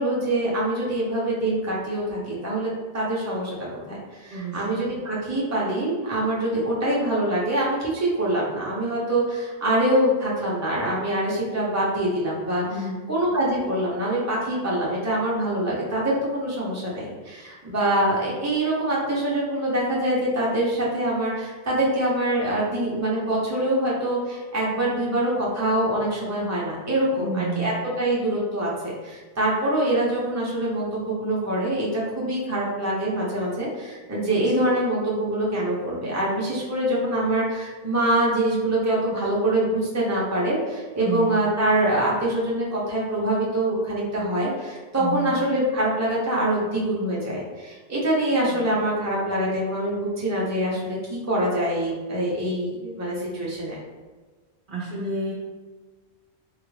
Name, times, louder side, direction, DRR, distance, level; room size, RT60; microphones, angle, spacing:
voice 1, 0.0-12.6 13.1-53.8, right 1 dB, 20° right, -6 dB, 0.7 m, -24 dB
voice 2, 4.3-4.8 12.7-13.1 27.2-27.7 41.0-41.3 45.0-45.3 48.5-48.6 54.7-55.3, right 3 dB, 60° right, -4 dB, 0.7 m, -30 dB
3.6 x 2.5 x 3.1 m, 1.3 s
omnidirectional pair, 1.1 m